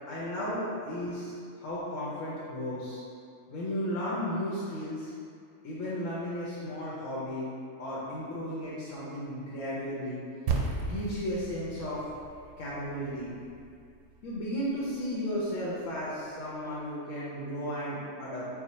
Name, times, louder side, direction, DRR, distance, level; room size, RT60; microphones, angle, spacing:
voice 1, 0.1-3.0 3.5-5.1 5.6-7.5 7.8-10.2 10.8-12.0 12.6-13.4 14.2-18.4, equal, 80° left, -8 dB, 1.1 m, -34 dB
sound 1, 10.5-15.0, right 4 dB, 80° right, 0.9 m, -36 dB
4.5 x 2.1 x 4.2 m, 2.3 s
omnidirectional pair, 1.3 m